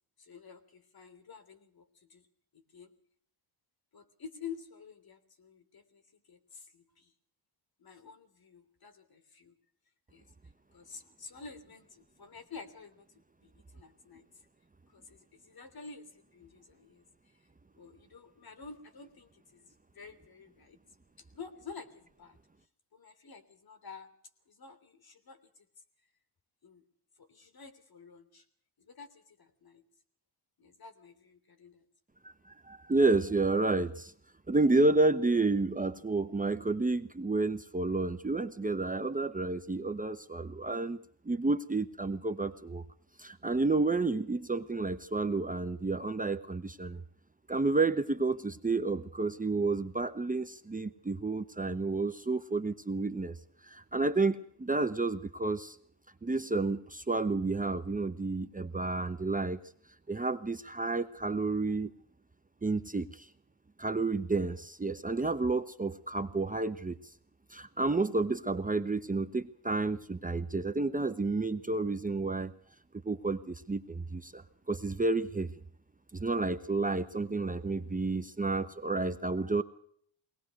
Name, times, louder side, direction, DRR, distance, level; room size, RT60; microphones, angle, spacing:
voice 1, 0.2-2.3 2.5-2.9 3.9-7.1 7.8-9.5 10.1-10.3 10.7-13.1 13.4-14.3 14.9-17.4 17.8-20.8 21.2-22.4 22.9-24.1 24.5-25.7 26.6-26.8 27.2-28.4 28.8-29.8 30.6-31.8, left 5 dB, 50° left, 10 dB, 3.3 m, -50 dB
voice 2, 32.6-34.1 34.5-41.0 41.3-42.8 43.2-47.0 47.5-53.4 53.6-55.8 56.2-59.6 60.1-61.9 62.6-63.3 63.8-67.0 67.5-72.5 73.0-75.5 76.1-79.6, right 3 dB, 15° right, 10 dB, 1.0 m, -30 dB
22.0 x 19.0 x 6.5 m, 0.64 s
cardioid pair, 80°, 47 cm